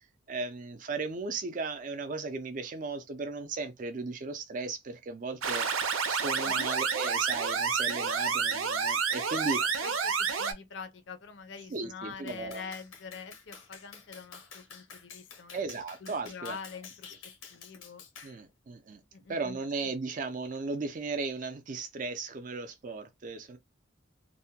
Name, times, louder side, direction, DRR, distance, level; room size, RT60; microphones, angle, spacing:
voice 1, 0.3-5.7 6.1-9.6 11.7-12.6 15.5-16.6 18.2-19.0 19.3-23.6, right 4 dB, 40° right, 0.4 m, -36 dB
sound 1, 5.4-10.5, right 5 dB, 85° right, 0.6 m, -29 dB
voice 2, 9.5-15.7 16.0-17.2 17.5-18.0 19.1-19.9, left 5 dB, 65° left, 0.5 m, -45 dB
Clapping, 12.3-18.4, left 6 dB, 90° left, 0.8 m, -50 dB
2.6 x 2.1 x 2.7 m
head